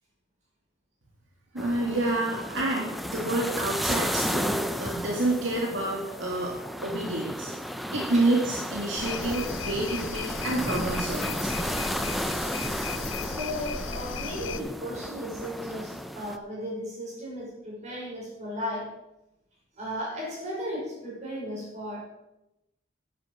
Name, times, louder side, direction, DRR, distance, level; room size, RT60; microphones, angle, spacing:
voice 1, 1.5-6.5 6.8-7.5 7.9-11.7, right 2 dB, 70° right, -1 dB, 2.0 m, -28 dB
sound 1, 1.6-16.4, equal, ahead, 0.6 m, -33 dB
sound 2, 8.9-14.6, left 6 dB, 75° left, 0.7 m, -36 dB
voice 2, 13.1-18.9 19.8-22.0, equal, 40° right, -3 dB, 5.6 m, -35 dB
11.0 x 9.7 x 5.5 m, 0.90 s
head